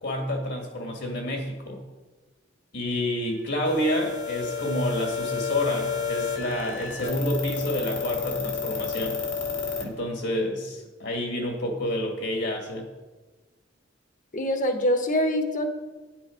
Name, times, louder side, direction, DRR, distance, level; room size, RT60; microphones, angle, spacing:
voice 1, 0.0-1.8 2.7-9.2 9.8-12.9, left 1 dB, 65° left, 2 dB, 1.9 m, -29 dB
sound 1, 3.7-9.8, left 6 dB, 85° left, 2.4 m, -31 dB
voice 2, 14.3-15.7, equal, 45° left, 6 dB, 1.2 m, -24 dB
10.0 x 10.0 x 5.1 m, 1.3 s
head